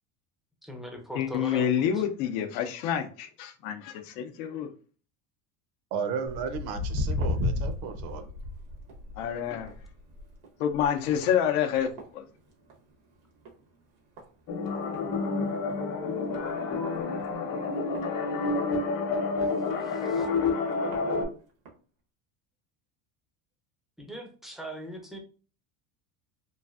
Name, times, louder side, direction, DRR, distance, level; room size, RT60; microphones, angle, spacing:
voice 1, 0.6-2.0 19.8-20.3 24.0-25.2, right 1 dB, ahead, 0.3 m, -41 dB
voice 2, 1.2-4.7 9.2-9.7 10.6-12.2, left 9 dB, 90° left, 0.6 m, -28 dB
voice 3, 5.9-8.3, right 6 dB, 65° right, 0.6 m, -34 dB
Walk footsteps, 6.3-12.9 13.2-13.6 14.2-14.3 14.9-15.0 15.4-15.5 15.7-15.8 16.4-16.5 17.2-18.8 19.4-19.5 20.2-20.3 20.7-21.0 21.7-21.8, left 2 dB, 90° right, 1.1 m, -34 dB
sound 1, 14.5-21.2, left 4 dB, 50° left, 0.8 m, -29 dB
3.1 x 2.5 x 2.3 m
supercardioid pair, 120°, 42 cm